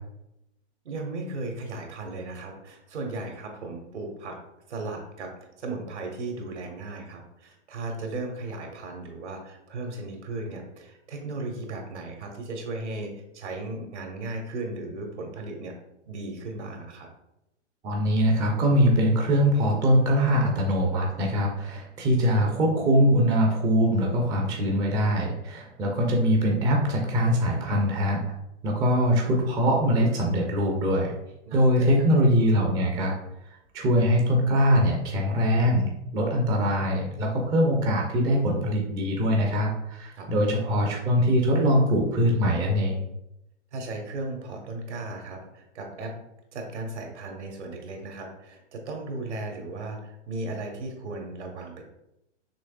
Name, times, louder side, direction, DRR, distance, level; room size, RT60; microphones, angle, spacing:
voice 1, 0.8-4.4 4.7-15.7 16.0-17.1 31.4-32.1 40.2-40.3 43.7-46.1 46.5-51.8, right 2 dB, 75° right, 2 dB, 1.4 m, -36 dB
voice 2, 17.8-28.2 28.6-31.1 31.5-33.1 33.5-43.0, equal, 10° right, 0 dB, 0.4 m, -22 dB
6.1 x 3.1 x 2.3 m, 0.85 s
hypercardioid pair, 120°, 35 cm